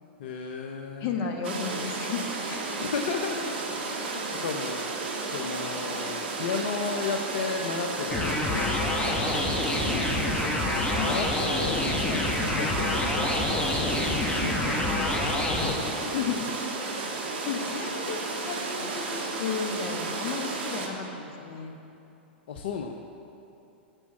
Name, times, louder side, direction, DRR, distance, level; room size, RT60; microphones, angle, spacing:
voice 1, 0.2-1.2 2.7-3.6 3.9-9.5 9.8-10.6 11.0-11.3 11.6-11.8 12.0-16.1 22.5-22.9, left 5 dB, 65° left, 3 dB, 0.8 m, -35 dB
voice 2, 1.0-2.7 10.9-11.3 16.1-16.5 17.4-21.7, left 6 dB, 40° left, 3 dB, 1.5 m, -33 dB
sound 1, 1.4-20.9, right 3 dB, 65° right, 1.7 m, -33 dB
sound 2, 8.1-15.7, left 2 dB, 15° left, 1.5 m, -27 dB
9.9 x 7.4 x 7.5 m, 2.8 s
hypercardioid pair, 105°, 6 cm